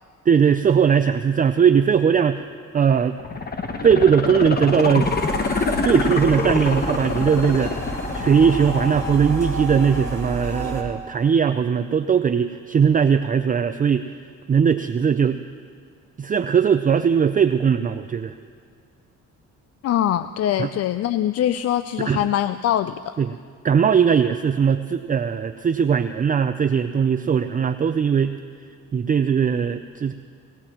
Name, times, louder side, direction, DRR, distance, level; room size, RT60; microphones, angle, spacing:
voice 1, 0.3-2.4 2.7-3.2 3.8-5.1 5.8-7.7 8.1-14.0 14.5-15.4 16.2-18.3 20.6-20.7 22.0-22.3 23.2-23.3 23.6-28.4 28.9-30.1, right 7 dB, 30° right, 9 dB, 0.4 m, -19 dB
sound 1, 3.2-10.1 10.5-10.6, left 3 dB, 30° left, 1.1 m, -26 dB
sound 2, 5.0-10.8, equal, 10° left, 3.3 m, -30 dB
voice 2, 19.8-23.2, left 11 dB, 55° left, 12 dB, 0.4 m, -23 dB
18.5 x 18.0 x 3.0 m, 2.2 s
cardioid pair, 90°, 30 cm